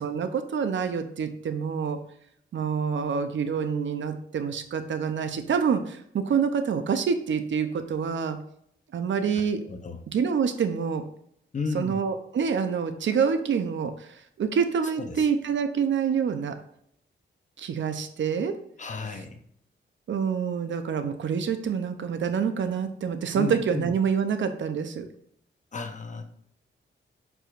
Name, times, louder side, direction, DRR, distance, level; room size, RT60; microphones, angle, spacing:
voice 1, 0.0-2.0 2.5-8.4 8.9-9.6 10.1-11.0 11.7-16.5 17.6-18.5 20.1-25.1, right 6 dB, 70° right, 8 dB, 0.7 m, -27 dB
voice 2, 9.7-10.0 11.5-12.0 15.0-15.3 18.8-19.4 23.3-23.9 25.7-26.2, left 4 dB, 40° left, 6 dB, 0.8 m, -33 dB
7.8 x 4.8 x 2.5 m, 0.68 s
wide cardioid pair, 135°, 20 cm